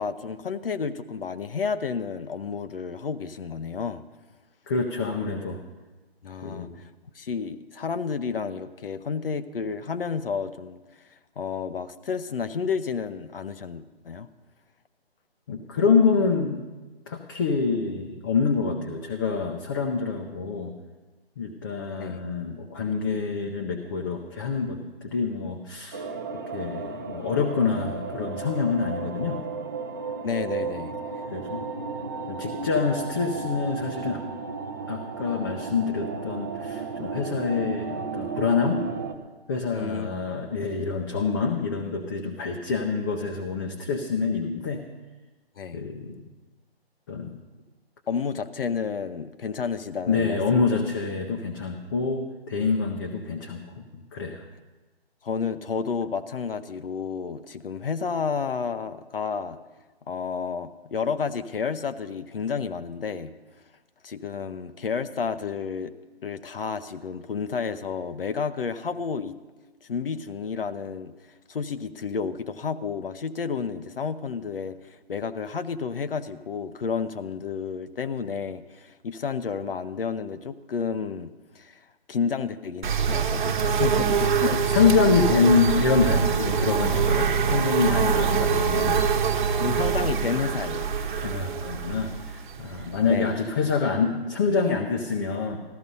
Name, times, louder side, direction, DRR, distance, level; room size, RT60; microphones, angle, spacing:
voice 1, 0.0-4.0 6.2-6.9 7.1-10.8 11.1-14.3 22.0-22.2 30.2-30.9 39.7-40.1 45.6-45.8 48.1-50.4 55.2-59.6 60.1-63.3 64.0-65.9 66.2-69.4 69.8-71.1 71.5-84.6 89.6-90.9 93.1-93.3, left 6 dB, 60° left, 10 dB, 0.8 m, -31 dB
voice 2, 4.7-5.6 6.4-6.8 15.5-16.6 17.1-20.7 21.4-26.0 26.5-29.4 31.3-31.6 32.3-34.2 34.9-38.8 39.5-44.8 45.7-46.2 47.1-47.4 50.1-54.4 84.7-89.0 91.2-95.6, left 5 dB, 20° left, 1 dB, 0.6 m, -26 dB
sound 1, 25.9-39.2, right 4 dB, 20° right, 0.6 m, -34 dB
sound 2, 82.8-93.4, right 6 dB, 50° right, 1.2 m, -24 dB
14.5 x 12.5 x 5.4 m, 1.2 s
figure-of-eight pair, 150°, 31 cm